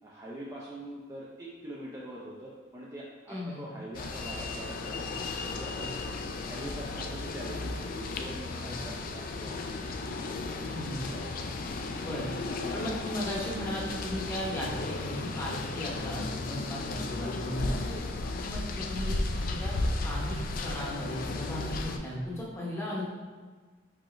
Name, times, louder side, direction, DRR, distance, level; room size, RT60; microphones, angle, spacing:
voice 1, 0.0-5.1 5.4-5.9 6.4-9.9 10.5-11.7 12.5-13.2 16.5-16.9 17.9-18.3, right 1 dB, 15° right, -5 dB, 0.4 m, -44 dB
voice 2, 3.3-3.6 8.6-8.7 10.7-11.0 12.0-12.3 12.7-17.8 18.4-19.8 20.0-23.0, equal, 15° left, -5 dB, 0.9 m, -36 dB
sound 1, 3.9-22.0, left 3 dB, 45° left, 0.3 m, -34 dB
4.8 x 4.1 x 2.5 m, 1.4 s
head